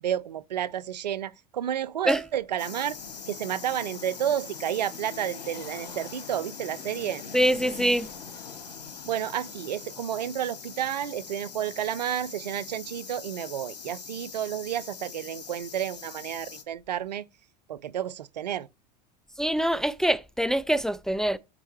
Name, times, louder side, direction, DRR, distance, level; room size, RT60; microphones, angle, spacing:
voice 1, 0.0-2.9 3.3-7.2 9.0-17.2 17.7-18.7, right 10 dB, 85° right, 0.5 m, -31 dB
sound 1, 2.6-16.6, left 6 dB, 85° left, 1.2 m, -42 dB
voice 2, 7.3-8.1 19.4-21.4, right 1 dB, ahead, 0.3 m, -24 dB
9.6 x 4.4 x 3.1 m
hypercardioid pair, 85°, 21 cm